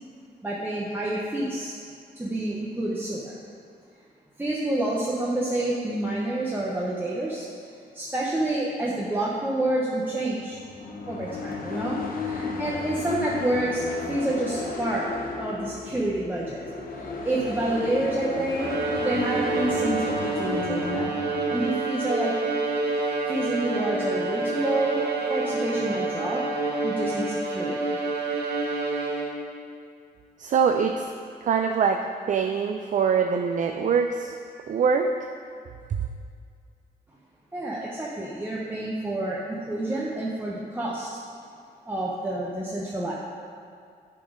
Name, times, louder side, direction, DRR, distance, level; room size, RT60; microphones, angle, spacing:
voice 1, 0.4-1.7 2.2-3.4 4.4-7.4 7.9-10.6 11.1-15.1 15.4-16.6 16.9-18.7 19.0-22.3 23.3-26.4 26.8-28.0 37.5-41.1 41.9-43.1, right 1 dB, 10° right, -6 dB, 1.0 m, -28 dB
sound 1, 10.5-21.6, left 4 dB, 55° left, 1.0 m, -34 dB
Bowed string instrument, 18.6-29.6, right 3 dB, 75° right, 1.0 m, -28 dB
voice 2, 30.4-31.1 31.4-34.3 34.7-35.1 35.9-36.0, right 6 dB, 50° right, 5 dB, 0.4 m, -23 dB
10.5 x 4.3 x 5.1 m, 2.3 s
cardioid pair, 100°, 17 cm